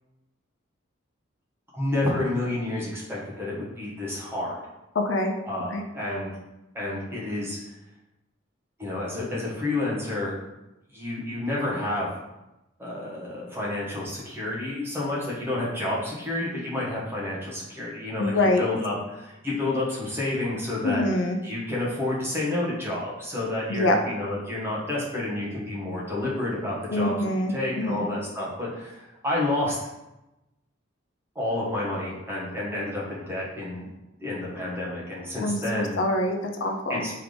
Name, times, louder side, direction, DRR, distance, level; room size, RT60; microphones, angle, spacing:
voice 1, 1.7-4.6 5.5-6.3 6.7-7.6 8.8-10.4 10.9-12.1 12.8-21.0 21.4-29.8 31.3-33.9 34.2-36.0 36.9-37.1, left 2 dB, 10° right, -6 dB, 1.1 m, -30 dB
voice 2, 5.0-5.3 5.7-5.8 18.2-18.7 20.8-21.4 23.7-24.0 26.9-28.1 35.4-37.1, left 2 dB, 65° left, 4 dB, 0.4 m, -25 dB
3.4 x 3.2 x 3.8 m, 0.96 s
head